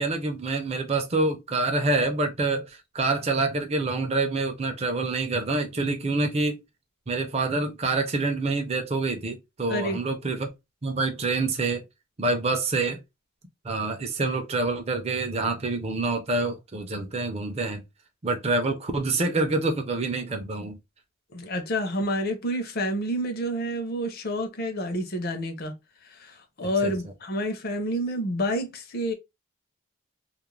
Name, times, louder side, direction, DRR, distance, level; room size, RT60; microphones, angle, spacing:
voice 1, 0.0-6.6 7.1-10.5 10.8-11.8 12.2-13.0 13.6-17.8 18.2-20.8 26.8-26.9, right 3 dB, 30° right, 0.5 m, -26 dB
voice 2, 9.7-10.0 21.3-25.7 26.2-29.1, equal, 45° left, 0.6 m, -29 dB
2.4 x 2.0 x 3.0 m
head